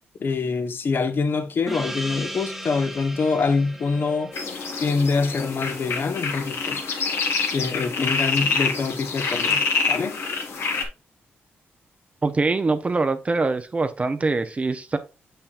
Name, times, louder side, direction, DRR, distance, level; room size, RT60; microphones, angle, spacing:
voice 1, 0.2-4.3 4.8-6.8 7.5-10.2, left 4 dB, 55° left, 0.8 m, -25 dB
Gong, 1.7-6.7, right 1 dB, 5° right, 1.0 m, -38 dB
sound 1, 4.3-10.9, left 4 dB, 75° left, 1.4 m, -26 dB
voice 2, 12.2-15.0, right 3 dB, 30° right, 0.6 m, -23 dB
6.8 x 5.7 x 2.4 m
cardioid pair, 80°, 4 cm